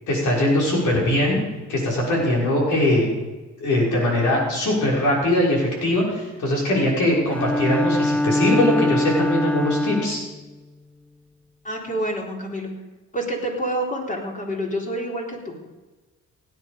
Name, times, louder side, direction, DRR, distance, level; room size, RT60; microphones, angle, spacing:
voice 1, 0.1-1.4 1.7-3.1 3.6-10.2, left 1 dB, 80° left, -3 dB, 6.4 m, -21 dB
Bowed string instrument, 7.3-10.3, left 1 dB, 5° left, 0.4 m, -22 dB
voice 2, 11.6-12.7 13.1-15.6, right 1 dB, 25° left, -1 dB, 4.0 m, -28 dB
17.0 x 10.0 x 5.4 m, 1.2 s
cardioid pair, 90°, 30 cm